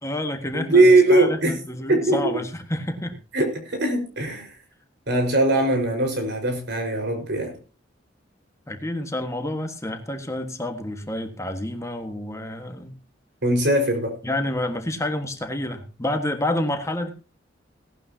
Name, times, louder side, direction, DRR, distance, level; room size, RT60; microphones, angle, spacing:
voice 1, 0.0-3.2 8.7-13.0 14.2-17.1, left 1 dB, 15° left, 5 dB, 1.5 m, -29 dB
voice 2, 0.5-1.5 1.9-2.3 3.3-4.6 5.1-7.5 13.4-14.1, right 2 dB, 65° right, 4 dB, 4.9 m, -20 dB
18.0 x 12.0 x 2.8 m, 0.35 s
head